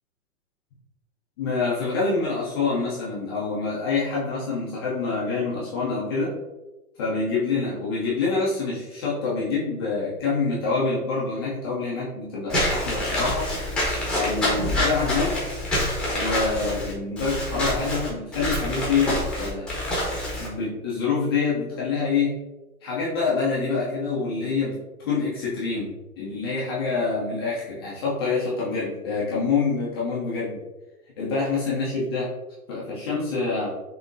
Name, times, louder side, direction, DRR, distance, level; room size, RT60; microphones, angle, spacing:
voice 1, 1.4-6.3 7.0-13.5 14.1-15.3 16.1-19.7 20.4-22.3 22.8-24.8 25.0-25.9 26.2-30.6 31.2-32.3 32.7-33.7, left 4 dB, 15° left, -7 dB, 0.5 m, -26 dB
Walk footsteps / Squeak, 12.5-20.5, left 1 dB, ahead, 0.9 m, -26 dB
5.9 x 2.8 x 2.6 m, 1.1 s
hypercardioid pair, 140°, 46 cm